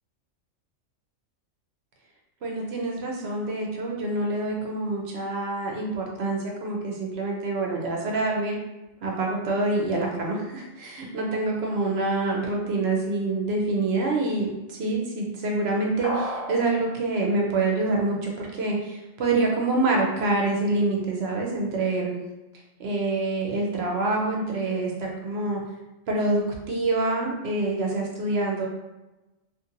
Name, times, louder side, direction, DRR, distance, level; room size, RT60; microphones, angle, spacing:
voice 1, 2.4-8.6 9.0-22.1 22.8-25.6 26.1-28.7, right 2 dB, 65° right, -1 dB, 0.7 m, -26 dB
sound 1, 16.0-16.6, left 1 dB, 15° right, 0.7 m, -30 dB
2.7 x 2.5 x 2.5 m, 1.0 s
omnidirectional pair, 1.3 m